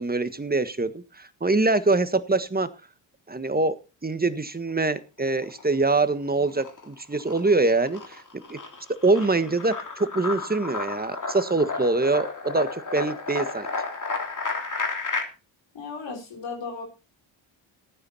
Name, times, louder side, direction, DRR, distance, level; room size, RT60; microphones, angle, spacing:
voice 1, 0.0-2.7 3.3-8.2 8.5-8.6 8.9-13.7, right 3 dB, 20° right, 12 dB, 1.5 m, -24 dB
sound 1, 5.3-6.1 6.4-15.2, left 4 dB, 40° left, 3.3 m, -32 dB
voice 2, 15.7-16.8, left 4 dB, 60° left, 1 dB, 3.9 m, -35 dB
15.0 x 9.6 x 4.2 m, 0.33 s
supercardioid pair, 50°, 49 cm